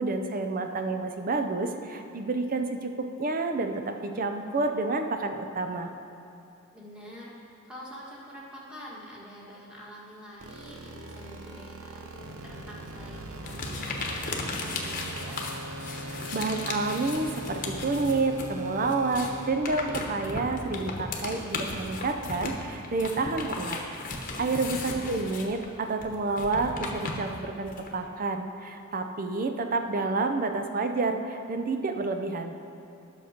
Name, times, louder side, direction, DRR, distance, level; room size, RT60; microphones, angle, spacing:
voice 1, 0.0-5.9 16.1-23.8 24.1-32.5, right 3 dB, 40° right, 6 dB, 0.6 m, -29 dB
voice 2, 6.7-15.5 24.8-25.2, equal, 5° right, -6 dB, 1.8 m, -46 dB
sound 1, 10.4-19.5, right 1 dB, 80° right, 0.9 m, -40 dB
sound 2, 13.5-18.5 18.8-27.9, left 3 dB, 40° left, 1.1 m, -36 dB
10.5 x 6.5 x 5.2 m, 2.9 s
head